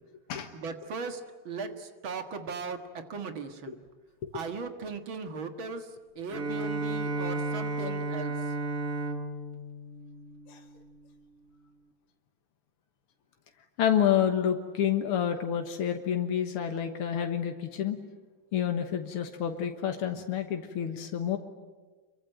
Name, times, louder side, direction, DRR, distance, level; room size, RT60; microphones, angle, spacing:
voice 1, 0.5-3.8 4.3-5.9 6.2-8.3, right 4 dB, 65° right, 7 dB, 2.4 m, -38 dB
Bowed string instrument, 6.3-11.0, right 2 dB, 45° right, 1.8 m, -33 dB
voice 2, 13.8-18.0 18.5-21.4, left 9 dB, 85° left, 5 dB, 2.3 m, -28 dB
26.0 x 23.0 x 9.1 m, 1.3 s
omnidirectional pair, 2.4 m